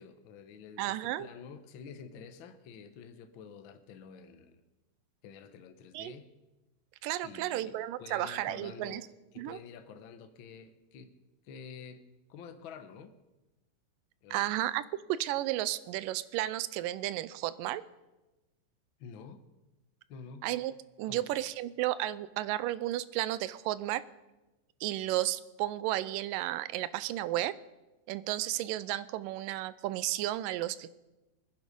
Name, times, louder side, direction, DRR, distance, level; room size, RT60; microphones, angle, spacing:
voice 1, 0.0-4.6 5.2-6.3 7.2-9.1 9.3-11.2 11.4-13.1 14.2-14.6 19.0-19.4 20.1-20.5 21.0-21.3, left 6 dB, 80° left, 8 dB, 1.1 m, -49 dB
voice 2, 0.8-1.3 5.9-6.1 7.0-9.1 9.4-9.6 14.3-14.8 15.1-17.8 20.4-20.7 21.0-24.0 24.8-27.5 28.1-31.0, right 15 dB, 85° right, 17 dB, 2.2 m, -33 dB
23.0 x 10.0 x 5.3 m, 1.1 s
omnidirectional pair, 3.9 m